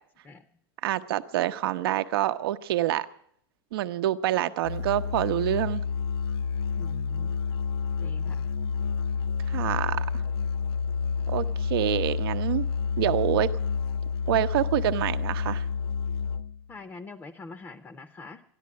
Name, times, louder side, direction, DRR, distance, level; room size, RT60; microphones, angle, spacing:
voice 1, 0.8-3.1 3.7-5.8 9.5-10.0 11.3-12.6 13.0-13.5 14.3-15.7, right 13 dB, 70° right, 11 dB, 0.8 m, -26 dB
Musical instrument, 4.6-16.7, left 5 dB, 80° left, 0.7 m, -29 dB
voice 2, 6.8-7.4 8.0-8.5 16.7-18.4, left 3 dB, 15° left, 11 dB, 0.6 m, -44 dB
13.5 x 11.0 x 9.5 m, 0.68 s
supercardioid pair, 155°, 13 cm